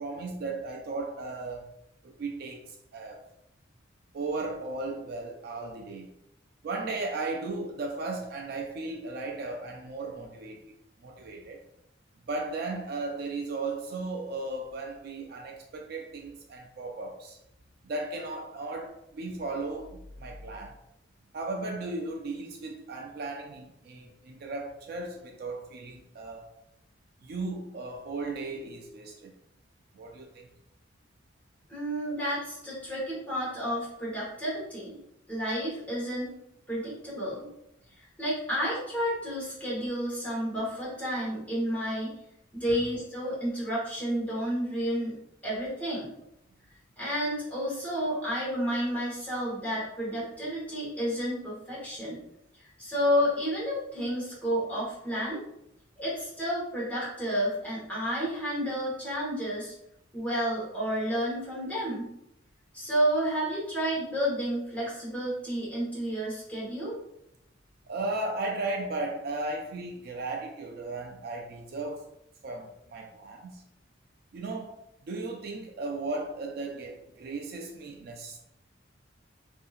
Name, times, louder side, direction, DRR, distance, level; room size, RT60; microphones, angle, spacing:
voice 1, 0.0-1.7 2.0-2.6 2.9-3.2 4.1-6.1 6.6-10.6 11.0-11.6 12.3-17.4 17.8-20.7 21.3-26.5 27.2-29.3 29.9-30.5 67.9-72.1 72.4-73.6 74.3-74.8 75.0-78.4, right 2 dB, 55° right, 0.3 m, -36 dB
voice 2, 31.7-35.0 35.3-36.3 36.7-37.5 38.0-42.1 42.5-45.2 45.4-46.1 47.0-52.2 52.6-55.4 56.0-59.7 60.1-62.1 62.7-67.0, equal, 10° left, 1.1 m, -31 dB
2.7 x 2.6 x 2.4 m
head